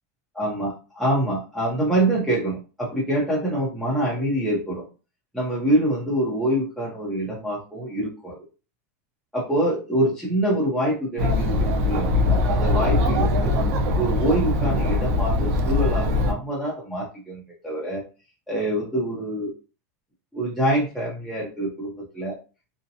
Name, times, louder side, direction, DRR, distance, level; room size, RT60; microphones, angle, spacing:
voice 1, 0.3-4.8 5.3-8.4 9.3-13.5 14.0-18.0 18.5-19.5 20.3-22.4, right 1 dB, ahead, -7 dB, 0.7 m, -25 dB
Chatter, 11.2-16.3, left 2 dB, 65° right, 0.5 m, -21 dB
2.7 x 2.1 x 2.7 m, 0.33 s
supercardioid pair, 155°, 8 cm